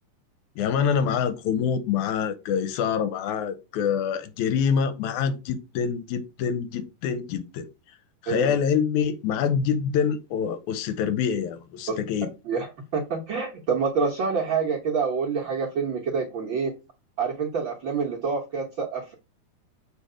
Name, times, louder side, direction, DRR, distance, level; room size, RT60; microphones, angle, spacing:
voice 1, 0.6-7.7 8.2-12.3, left 7 dB, 80° left, 1.9 m, -26 dB
voice 2, 12.9-16.8 17.2-19.1, right 5 dB, 85° right, 1.1 m, -27 dB
7.6 x 3.4 x 4.9 m
omnidirectional pair, 3.8 m